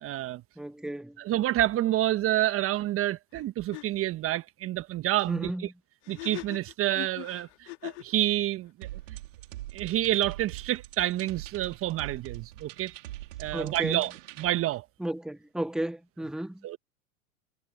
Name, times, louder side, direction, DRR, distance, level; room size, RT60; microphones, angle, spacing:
voice 1, 0.0-0.4 1.2-5.5 6.1-8.9 9.7-12.9 13.4-14.1 14.4-14.8 16.6-16.8, right 14 dB, 35° right, 1.3 m, -28 dB
voice 2, 0.6-1.2 5.3-5.7 13.5-14.1 15.0-16.7, right 1 dB, ahead, 1.7 m, -34 dB
sound 1, 3.3-3.4 3.7-3.9 6.0-8.2, left 24 dB, 55° left, 1.9 m, -41 dB
sound 2, 8.8-14.5, right 16 dB, 65° right, 3.2 m, -43 dB
hypercardioid pair, 100°, 41 cm